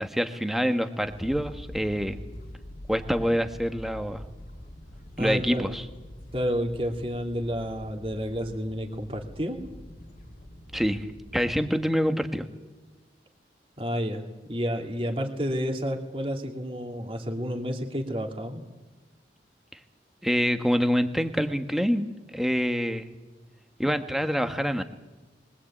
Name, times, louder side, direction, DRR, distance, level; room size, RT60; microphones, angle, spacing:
voice 1, 0.0-2.2 2.9-4.2 5.2-5.8 10.7-11.1 11.3-12.5 19.7-19.8 20.2-23.1 23.8-24.8, equal, ahead, 7 dB, 1.3 m, -26 dB
sound 1, 1.0-11.7, left 1 dB, 50° left, 2.4 m, -44 dB
voice 2, 5.2-5.7 6.3-9.6 13.8-14.2 14.5-18.6, equal, 30° right, 3 dB, 2.6 m, -30 dB
22.5 x 18.0 x 8.6 m, 1.2 s
head